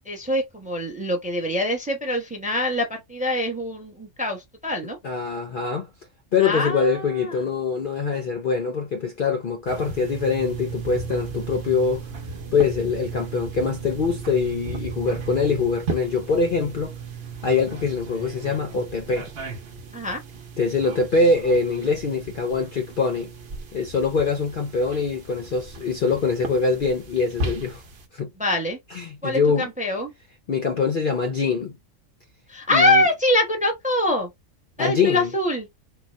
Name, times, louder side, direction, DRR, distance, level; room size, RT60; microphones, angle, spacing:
voice 1, 0.1-2.9 3.1-4.4 4.6-5.0 6.4-7.0 19.9-20.2 28.4-28.8 29.2-29.4 29.8-30.1 32.5-34.3 34.8-35.6, left 1 dB, 10° right, 0.6 m, -23 dB
voice 2, 4.8-5.9 6.3-12.1 12.5-16.9 17.4-19.3 20.6-23.3 23.7-27.8 28.1-28.3 28.9-29.7 30.5-31.8 32.7-33.0 34.8-35.4, left 4 dB, 55° left, 0.6 m, -23 dB
sound 1, 9.7-28.1, right 4 dB, 55° right, 1.0 m, -35 dB
3.9 x 2.2 x 3.0 m
omnidirectional pair, 1.3 m